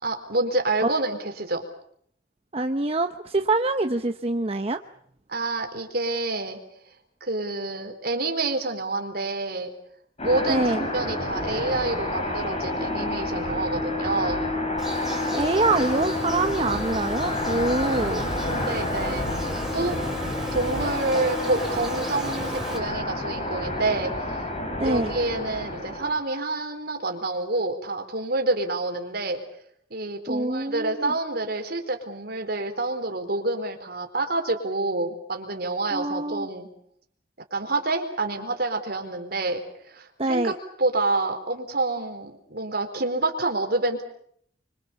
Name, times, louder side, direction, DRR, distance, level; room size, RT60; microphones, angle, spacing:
voice 1, 0.0-1.6 5.3-6.6 7.2-9.7 10.2-14.4 18.5-20.0 20.5-24.4 24.8-29.4 29.9-36.7 37.5-40.5 40.8-44.0, right 2 dB, 55° right, 5 dB, 4.3 m, -28 dB
voice 2, 2.5-4.8 10.5-10.9 15.3-18.3 24.8-25.1 30.3-31.1 35.9-36.5 40.2-40.5, right 2 dB, 35° right, 6 dB, 1.0 m, -25 dB
sound 1, 10.2-26.2, left 1 dB, 35° left, 4.5 m, -29 dB
Insect, 14.8-22.8, right 1 dB, ahead, 6.4 m, -36 dB
27.5 x 24.5 x 7.2 m, 0.67 s
head